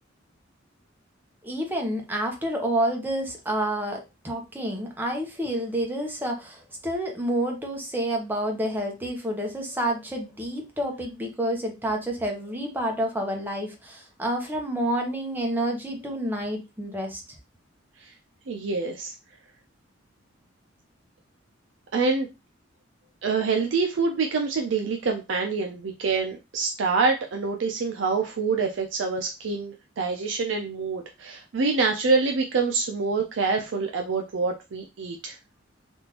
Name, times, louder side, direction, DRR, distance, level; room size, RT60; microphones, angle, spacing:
voice 1, 1.4-17.2, right 1 dB, 10° right, 1 dB, 0.7 m, -29 dB
voice 2, 18.5-19.1 21.9-22.3 23.2-35.4, right 4 dB, 70° right, 3 dB, 0.4 m, -26 dB
3.5 x 2.5 x 2.8 m, 0.26 s
head